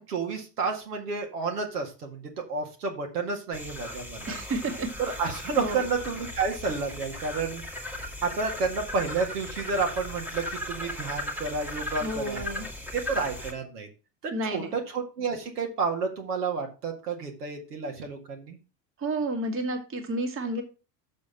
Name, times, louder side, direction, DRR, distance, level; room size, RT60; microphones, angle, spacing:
voice 1, 0.0-4.4 5.0-7.6 8.2-12.4 12.9-13.9 14.2-18.6, right 4 dB, 65° right, 2 dB, 2.0 m, -30 dB
sound 1, 3.5-13.5, left 1 dB, 5° right, 1.5 m, -37 dB
voice 2, 4.3-4.9 5.6-5.8 12.0-12.7 14.3-14.8 19.0-20.6, right 2 dB, 25° right, 5 dB, 1.9 m, -31 dB
6.8 x 6.3 x 5.7 m, 0.33 s
figure-of-eight pair, 80°, 49 cm